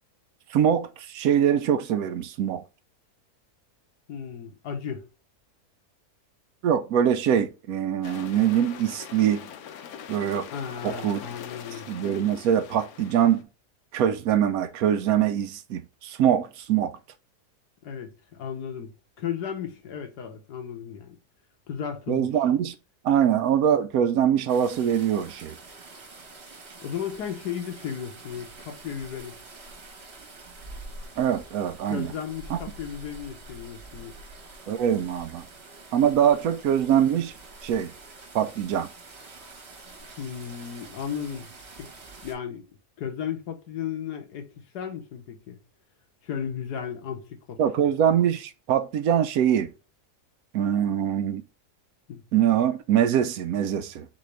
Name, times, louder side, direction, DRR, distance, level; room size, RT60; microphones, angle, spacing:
voice 1, 0.5-2.6 6.6-9.5 10.1-10.5 10.8-11.2 11.9-13.5 13.9-16.9 22.1-22.7 23.0-25.5 31.2-32.1 32.5-32.6 34.7-35.4 35.9-37.3 37.6-37.9 38.3-38.9 47.6-49.7 50.5-51.4 52.3-54.1, right 9 dB, 70° right, 1.0 m, -23 dB
voice 2, 4.1-5.1 10.5-11.9 17.8-21.2 21.7-22.3 26.8-29.4 31.9-34.1 40.2-41.5 41.8-41.9 42.2-42.6 43.0-44.5 44.7-45.6 46.2-47.6 52.1-52.2, left 8 dB, 85° left, 1.6 m, -35 dB
sound 1, 8.0-13.4, left 8 dB, 70° left, 1.1 m, -42 dB
sound 2, 24.5-42.3, right 3 dB, 45° right, 1.4 m, -46 dB
4.1 x 3.8 x 3.2 m
omnidirectional pair, 1.7 m